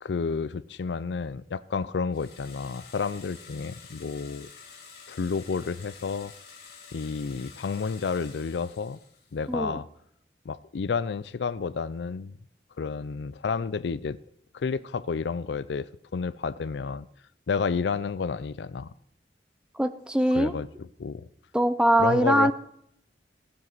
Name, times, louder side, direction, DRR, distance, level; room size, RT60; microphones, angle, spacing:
voice 1, 0.0-4.5 5.1-6.3 6.9-9.0 9.3-9.8 10.5-12.4 12.8-14.2 14.5-17.1 17.5-18.9 20.3-20.7 21.0-21.3 22.0-22.5, left 5 dB, 80° left, 0.4 m, -30 dB
sound 1, 2.1-9.4, left 5 dB, 65° left, 2.3 m, -49 dB
voice 2, 9.5-9.8 19.7-20.5 21.5-22.5, right 1 dB, 5° right, 0.5 m, -22 dB
17.5 x 7.6 x 4.0 m
head